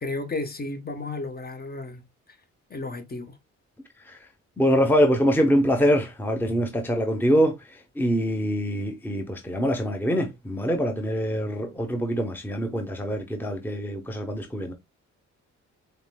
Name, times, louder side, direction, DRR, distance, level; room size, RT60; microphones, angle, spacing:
voice 1, 0.0-2.0 2.7-3.4, left 2 dB, 30° left, 1.0 m, -33 dB
voice 2, 4.6-14.7, equal, 5° left, 0.8 m, -24 dB
5.1 x 3.1 x 2.2 m
cardioid pair, 90°, 30 cm